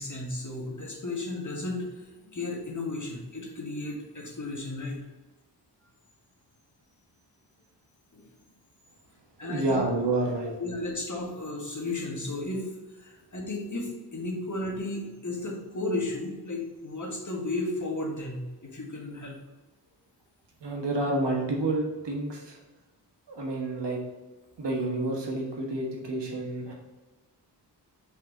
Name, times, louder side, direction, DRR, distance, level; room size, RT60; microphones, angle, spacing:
voice 1, 0.0-5.0 8.1-8.2 9.4-9.8 10.6-12.7 12.9-19.3, left 2 dB, 45° left, 0 dB, 1.5 m, -34 dB
voice 2, 9.4-10.5 20.6-22.6 23.3-24.0 24.6-26.7, right 2 dB, 70° right, -1 dB, 1.5 m, -29 dB
5.6 x 4.6 x 3.8 m, 1.2 s
wide cardioid pair, 70°, 43 cm